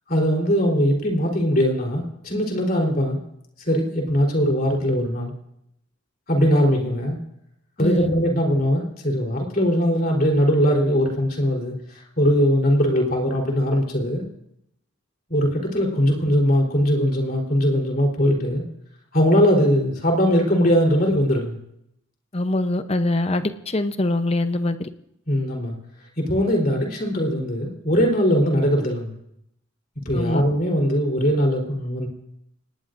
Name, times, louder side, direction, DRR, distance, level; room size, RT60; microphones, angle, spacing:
voice 1, 0.1-3.2 3.7-5.3 6.3-7.2 7.8-14.2 15.3-18.6 19.1-21.6 25.3-25.8 26.2-29.1 30.1-32.1, equal, 45° left, 3.7 m, -20 dB
voice 2, 7.8-8.1 22.3-24.9 30.1-30.4, left 1 dB, 30° left, 0.7 m, -23 dB
26.5 x 18.5 x 2.6 m
head